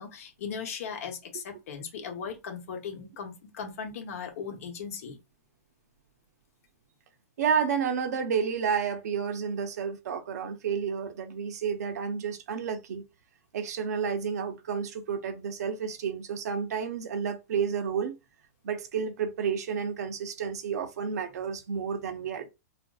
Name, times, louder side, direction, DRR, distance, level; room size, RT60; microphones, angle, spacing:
voice 1, 0.0-5.2, left 6 dB, 60° left, 0.9 m, -38 dB
voice 2, 7.4-13.0 13.5-18.2 18.6-22.5, right 6 dB, 70° right, 0.6 m, -30 dB
3.5 x 2.5 x 2.3 m
hypercardioid pair, 160°, 9 cm